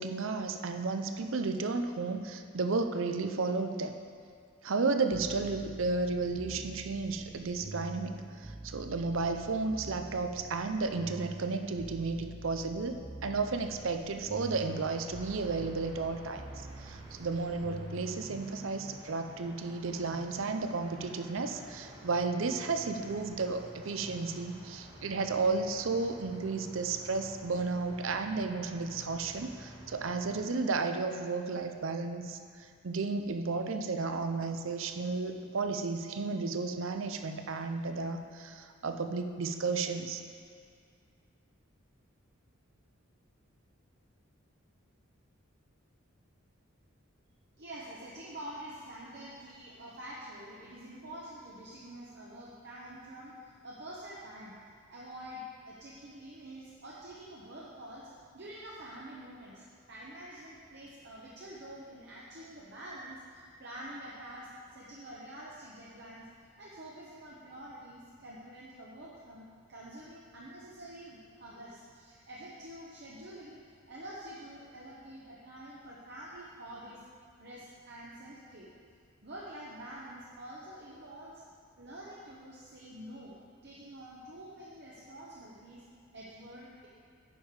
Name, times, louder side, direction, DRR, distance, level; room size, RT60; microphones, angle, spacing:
voice 1, 0.0-4.0 4.6-13.0 13.2-40.2, right 4 dB, 65° right, 6 dB, 0.6 m, -33 dB
sound 1, 5.1-18.4, right 2 dB, 10° right, 0.3 m, -46 dB
sound 2, 14.4-30.4, equal, 25° right, 1.7 m, -51 dB
voice 2, 47.6-54.6 54.9-58.1 58.3-66.3 66.6-73.6 73.9-77.0 77.4-78.7 79.2-81.4 81.8-83.3 83.6-85.8 86.1-86.9, right 1 dB, 50° right, -6 dB, 1.0 m, -47 dB
9.8 x 6.4 x 4.8 m, 2.2 s
head